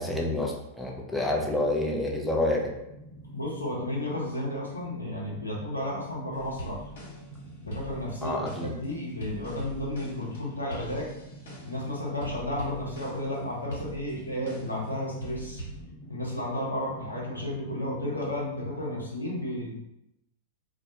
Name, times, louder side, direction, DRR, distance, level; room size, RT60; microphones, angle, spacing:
voice 1, 0.0-2.7 8.2-8.7, left 1 dB, ahead, -2 dB, 0.5 m, -28 dB
sound 1, 2.8-18.7, right 1 dB, 30° left, 0.8 m, -47 dB
voice 2, 3.3-6.8 7.6-11.1 11.6-15.6 16.1-19.7, left 1 dB, 90° left, -3 dB, 0.6 m, -33 dB
sound 2, 6.3-7.4 7.7-11.9 12.2-13.4 13.7-14.9 15.2-15.8, right 1 dB, 65° left, 0.9 m, -42 dB
2.2 x 2.1 x 2.7 m, 0.86 s
figure-of-eight pair, 95°, 0 cm